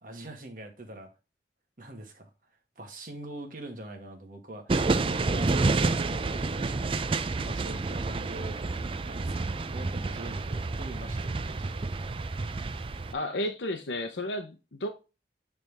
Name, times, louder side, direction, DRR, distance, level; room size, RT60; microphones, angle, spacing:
voice 1, 0.0-1.1 1.8-2.3 2.8-8.6 9.0-11.8, right 1 dB, 50° right, 1.6 m, -43 dB
sound 1, 4.7-13.1, right 3 dB, 30° right, 0.4 m, -29 dB
voice 2, 13.1-14.9, left 1 dB, 85° left, 0.8 m, -32 dB
9.0 x 3.5 x 3.4 m
head